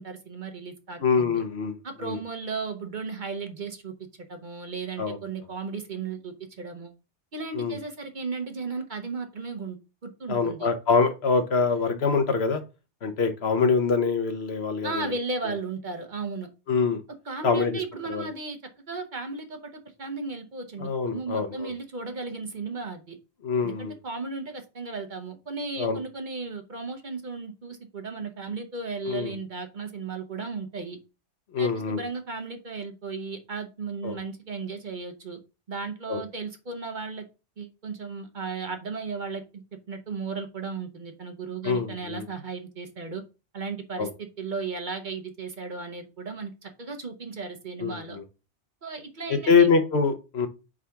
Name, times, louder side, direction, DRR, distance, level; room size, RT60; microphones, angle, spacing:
voice 1, 0.0-1.3 1.8-3.9 4.3-6.9 7.3-9.8 10.0-10.7 14.8-16.5 17.2-18.6 18.9-23.2 23.6-31.0 31.6-35.4 35.7-37.2 37.6-43.2 43.5-48.2 48.8-49.7, right 4 dB, 45° right, 6 dB, 1.0 m, -35 dB
voice 2, 1.0-2.2 5.0-5.2 7.5-7.8 10.3-12.6 13.0-15.1 16.7-17.0 17.4-17.8 18.1-18.3 20.8-21.7 23.4-23.9 25.8-26.0 29.0-29.3 31.5-32.0 34.0-34.1 36.1-36.2 41.6-42.2 44.0-44.1 47.8-48.2 49.5-50.5, left 5 dB, 65° left, 8 dB, 1.1 m, -24 dB
4.8 x 3.8 x 5.6 m, 0.30 s
omnidirectional pair, 1.2 m